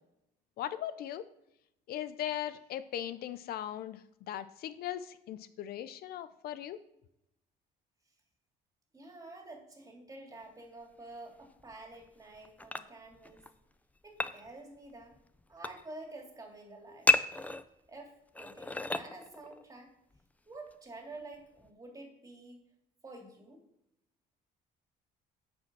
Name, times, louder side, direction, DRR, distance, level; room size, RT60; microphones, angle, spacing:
voice 1, 0.6-1.2 1.9-6.8, left 11 dB, 65° left, 13 dB, 0.5 m, -39 dB
voice 2, 8.9-13.5 14.0-15.1 15.5-17.1 17.9-19.9 20.5-22.6 23.0-23.6, right 2 dB, 20° right, 1 dB, 2.6 m, -49 dB
sound 1, 11.4-12.1 12.3-13.5 14.0-14.5 14.9-15.8 17.1-17.9 18.3-19.7 20.1-20.2 20.7-20.8 21.3-21.7, left 2 dB, 10° left, 0.5 m, -32 dB
9.3 x 5.1 x 6.1 m, 0.83 s
cardioid pair, 110°, 17 cm